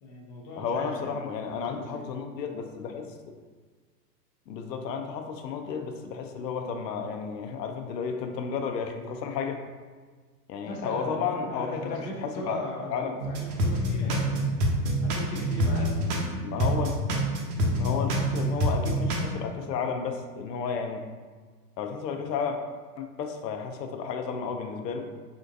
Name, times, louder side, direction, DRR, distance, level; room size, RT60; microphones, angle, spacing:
voice 1, 0.0-2.0 10.6-14.6 15.0-15.9, left 1 dB, 25° left, -2 dB, 0.4 m, -38 dB
voice 2, 0.6-3.4 4.5-9.6 10.5-12.6 12.9-13.2 16.4-16.9 17.7-21.1 21.8-22.6 23.0-25.1, left 6 dB, 75° left, 5 dB, 0.6 m, -32 dB
sound 1, 13.2-16.3 16.6-19.2, right 1 dB, 65° right, 0.8 m, -26 dB
3.6 x 2.5 x 2.6 m, 1.5 s
hypercardioid pair, 110°, 50 cm